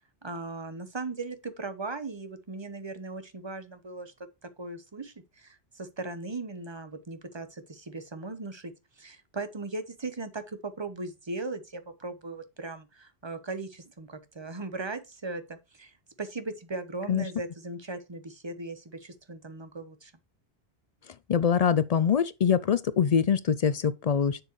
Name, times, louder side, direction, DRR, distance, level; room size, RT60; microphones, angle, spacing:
voice 1, 0.2-4.1 4.6-20.1, right 3 dB, 25° right, 1.0 m, -38 dB
voice 2, 21.3-24.4, left 7 dB, 55° left, 0.4 m, -24 dB
7.4 x 6.8 x 3.1 m
omnidirectional pair, 1.1 m